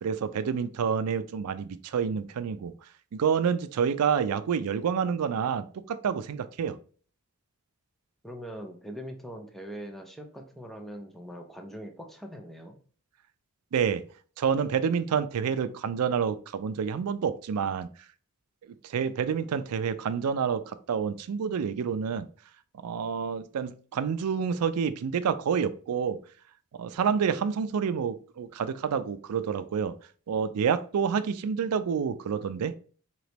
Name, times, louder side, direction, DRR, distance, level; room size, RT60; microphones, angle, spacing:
voice 1, 0.0-2.7 3.1-6.8 13.7-14.0 14.4-17.9 18.7-22.3 22.8-26.2 26.8-30.0 30.3-32.7, right 7 dB, 85° right, 0.4 m, -28 dB
voice 2, 8.2-12.8, equal, ahead, 0.5 m, -42 dB
4.0 x 2.9 x 3.3 m
head